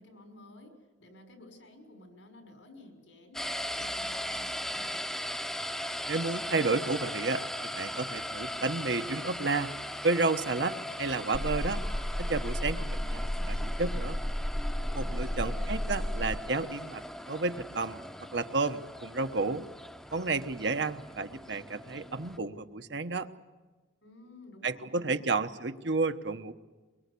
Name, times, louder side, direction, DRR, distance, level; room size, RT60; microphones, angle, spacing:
voice 1, 0.0-5.1 15.0-15.7 24.0-25.2, left 1 dB, 85° left, 5 dB, 6.1 m, -53 dB
sound 1, 3.3-22.4, equal, 5° left, 0.8 m, -39 dB
voice 2, 6.1-9.7 10.0-11.8 12.2-14.2 14.9-18.0 18.3-19.7 20.1-23.3 24.6-26.5, right 3 dB, 65° right, 8 dB, 1.1 m, -31 dB
sound 2, 11.3-16.3, left 1 dB, 30° left, 1.2 m, -32 dB
24.0 x 23.0 x 8.4 m, 1.3 s
head